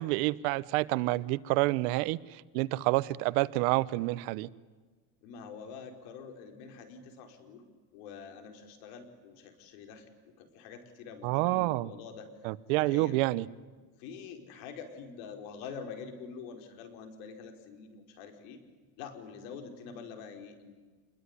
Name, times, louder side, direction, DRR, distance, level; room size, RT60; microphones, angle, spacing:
voice 1, 0.0-4.5 11.2-11.9 12.4-13.5, right 20 dB, 75° right, 18 dB, 1.1 m, -28 dB
voice 2, 5.2-7.6 7.9-10.1 10.4-12.5 12.8-13.2 14.0-18.6 19.0-20.8, left 6 dB, 75° left, 6 dB, 5.1 m, -46 dB
27.5 x 22.0 x 9.9 m, 1.4 s
cardioid pair, 140°, 43 cm